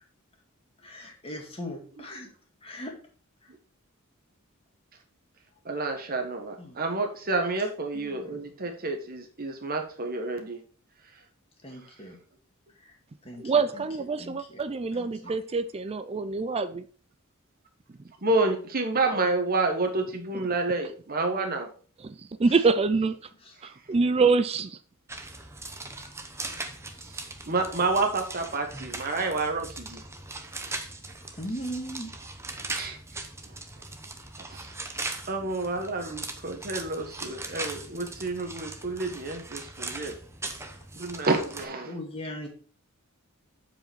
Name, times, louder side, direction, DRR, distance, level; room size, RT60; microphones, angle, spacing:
voice 1, 0.8-2.3 2.6-2.9 6.6-6.8 7.9-8.4 11.6-12.2 13.3-13.4 14.2-14.3 14.9-15.3 22.4-22.6 31.4-32.1 41.9-42.5, equal, 25° left, 2.0 m, -38 dB
voice 2, 5.6-10.6 18.2-21.7 26.0-26.1 27.5-30.0 32.7-33.0 34.4-34.7 35.3-40.2 40.9-42.0, right 3 dB, 45° right, 1.3 m, -29 dB
voice 3, 13.4-16.8 22.0-23.2 23.6-24.8, right 4 dB, 30° right, 0.4 m, -25 dB
sound 1, 25.1-41.6, right 2 dB, 15° right, 0.8 m, -39 dB
7.9 x 4.9 x 4.4 m
head